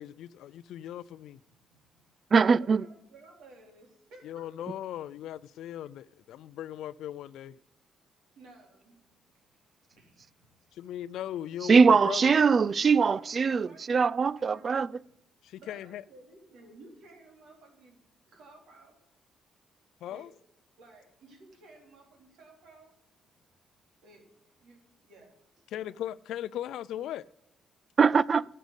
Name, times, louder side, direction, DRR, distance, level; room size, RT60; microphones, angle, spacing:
voice 1, 0.0-1.4 4.2-7.6 10.7-12.3 15.4-16.0 20.0-20.3 25.7-27.2, left 11 dB, 80° left, 0.4 m, -38 dB
voice 2, 1.5-1.9 2.6-4.4 8.4-9.3 9.9-10.9 12.9-14.8 15.6-19.0 20.1-20.3 20.8-22.9 24.0-24.3 24.6-25.9, right 2 dB, 75° right, 3.6 m, -55 dB
voice 3, 2.3-2.8 11.7-14.9 28.0-28.4, right 5 dB, 40° right, 0.3 m, -22 dB
11.5 x 6.7 x 8.0 m
cardioid pair, 90°, 0 cm